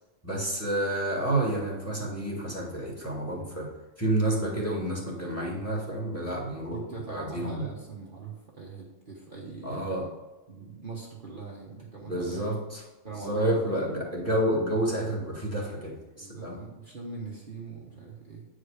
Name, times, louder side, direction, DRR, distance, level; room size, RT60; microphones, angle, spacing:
voice 1, 0.2-3.7 4.0-6.8 7.1-7.7 9.6-10.0 12.0-12.8 13.2-16.6, right 1 dB, 10° left, -2 dB, 2.2 m, -29 dB
voice 2, 4.3-4.7 6.7-9.9 10.5-12.4 13.0-14.1 16.1-18.5, right 4 dB, 40° right, -3 dB, 1.4 m, -41 dB
9.2 x 5.0 x 5.0 m, 1.1 s
omnidirectional pair, 1.4 m